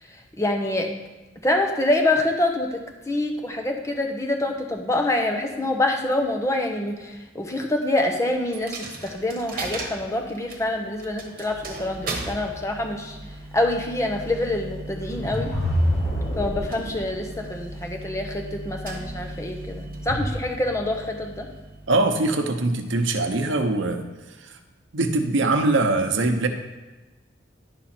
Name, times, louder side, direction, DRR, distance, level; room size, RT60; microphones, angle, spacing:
voice 1, 0.4-0.9 1.4-13.2 13.5-15.5 16.4-21.5, left 1 dB, 15° left, 2 dB, 0.9 m, -26 dB
Coin (dropping), 8.5-22.3, right 2 dB, 50° right, 1.2 m, -36 dB
sound 1, 15.0-17.0, equal, 55° left, 3.3 m, -25 dB
voice 2, 21.9-24.0 24.4-24.5 24.9-26.5, right 2 dB, 90° right, 6 dB, 0.9 m, -22 dB
11.5 x 4.9 x 4.4 m, 1.2 s
head